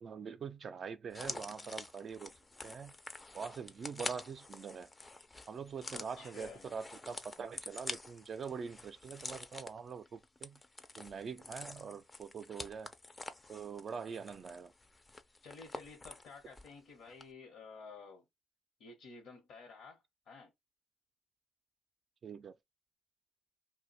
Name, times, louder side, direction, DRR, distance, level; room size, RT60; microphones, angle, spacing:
voice 1, 0.0-2.3 2.6-2.9 3.3-4.9 5.5-10.6 11.0-12.9 13.5-14.7 22.2-22.5, right 6 dB, 50° right, 0.4 m, -44 dB
sound 1, 1.1-16.8 17.1-17.2, left 2 dB, 20° left, 0.4 m, -47 dB
voice 2, 5.9-6.7 15.4-18.3 18.8-20.5, left 4 dB, 75° left, 1.0 m, -52 dB
2.5 x 2.2 x 3.9 m
cardioid pair, 90°, 0 cm